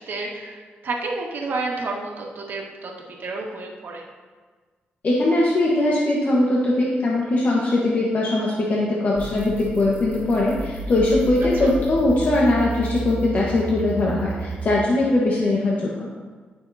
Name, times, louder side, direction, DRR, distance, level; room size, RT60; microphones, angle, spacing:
voice 1, 0.0-4.0 11.4-11.7 15.3-15.5, right 3 dB, 60° right, -1 dB, 1.7 m, -31 dB
voice 2, 5.0-16.1, left 2 dB, 50° left, -4 dB, 1.3 m, -21 dB
sound 1, 9.2-14.7, right 2 dB, 30° right, 1.3 m, -32 dB
17.0 x 6.4 x 2.8 m, 1.5 s
cardioid pair, 125°, 4 cm